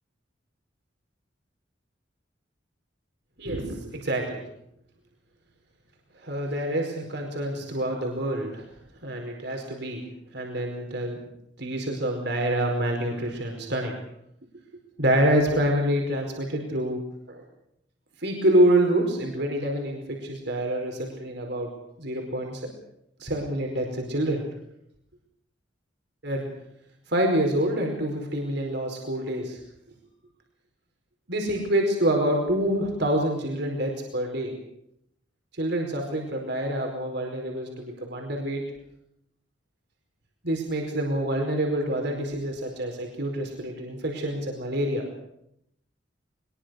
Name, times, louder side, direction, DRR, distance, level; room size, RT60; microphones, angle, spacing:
voice 1, 3.4-4.4 6.2-8.7 9.0-10.0 10.3-11.2 11.6-13.9 15.0-17.0 17.3-17.4 18.2-21.7 22.0-22.6 23.2-24.4 26.2-26.4 27.1-29.6 31.3-34.5 35.6-38.6 40.4-45.1, right 1 dB, 65° right, 2 dB, 4.9 m, -26 dB
22.5 x 22.0 x 6.6 m, 0.76 s
head